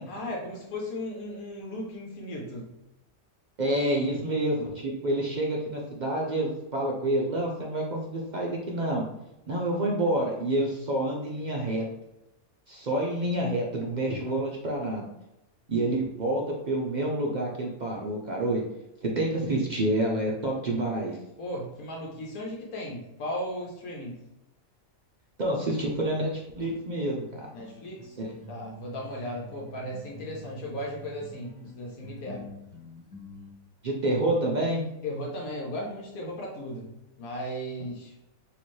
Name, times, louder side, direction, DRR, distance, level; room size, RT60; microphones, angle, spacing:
voice 1, 0.1-2.7 21.4-24.2 27.5-28.2 28.5-32.5 35.0-38.1, left 1 dB, 80° left, -2 dB, 1.3 m, -36 dB
voice 2, 3.6-9.0 9.5-11.8 12.7-15.1 15.7-18.6 19.0-21.2 25.4-27.5 28.2-28.3 33.8-34.8, right 1 dB, 60° right, -2 dB, 0.4 m, -28 dB
sound 1, 26.6-33.5, right 1 dB, 20° right, 0.6 m, -47 dB
4.2 x 3.0 x 3.1 m, 0.91 s
omnidirectional pair, 1.5 m